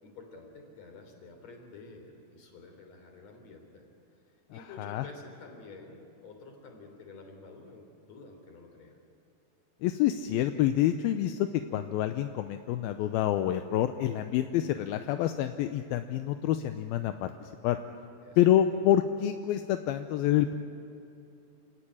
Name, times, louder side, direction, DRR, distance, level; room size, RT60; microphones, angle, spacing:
voice 1, 0.0-3.8 4.5-9.0 18.2-18.8, left 3 dB, 40° left, 4 dB, 4.4 m, -50 dB
voice 2, 4.5-5.0 9.8-17.8 18.4-20.6, left 12 dB, 75° left, 8 dB, 2.4 m, -27 dB
29.0 x 18.0 x 9.9 m, 2.7 s
omnidirectional pair, 4.9 m